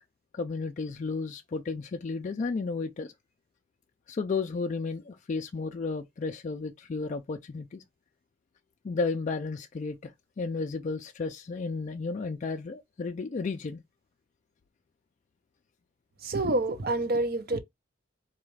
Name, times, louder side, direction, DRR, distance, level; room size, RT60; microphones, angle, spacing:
voice 1, 0.3-3.1 4.1-7.8 8.8-10.1 10.4-13.8, left 4 dB, 40° left, 0.3 m, -33 dB
voice 2, 16.2-17.6, right 2 dB, 50° right, 0.7 m, -27 dB
4.0 x 2.3 x 3.1 m
head